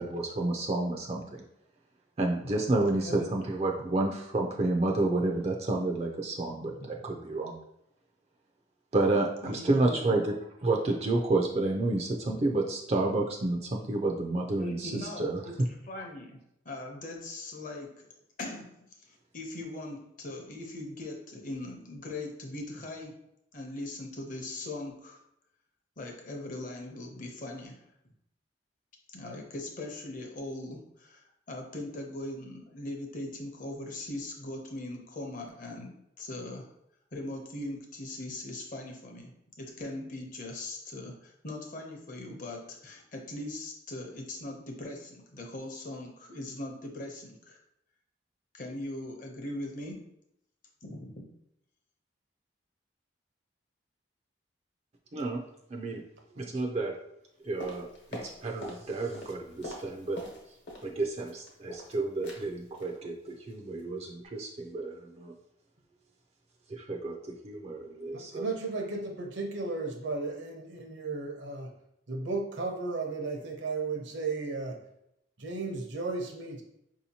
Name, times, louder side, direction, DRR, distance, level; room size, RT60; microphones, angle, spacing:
voice 1, 0.0-1.4 2.2-7.6 8.9-10.3 10.6-15.4 55.1-55.4 55.7-56.0 56.3-57.0 57.4-60.2 60.8-65.3 66.7-68.5, right 2 dB, 35° right, 1 dB, 0.4 m, -30 dB
voice 2, 9.4-10.1 14.6-15.6 15.8-18.1 18.4-18.8 19.1-23.2 23.5-25.2 26.0-28.1 29.1-36.7 37.1-47.6 48.5-50.1 50.8-51.2, left 1 dB, 45° left, 2 dB, 0.7 m, -40 dB
sound 1, 57.6-58.8 59.1-60.9 61.2-61.9 62.2-62.5 62.7-63.0 63.3-63.5 63.8-63.9, left 1 dB, 65° left, 1.0 m, -44 dB
voice 3, 68.1-71.7 72.1-74.8 75.4-76.6, right 3 dB, 70° right, 2 dB, 0.8 m, -34 dB
5.0 x 2.8 x 2.8 m, 0.79 s
head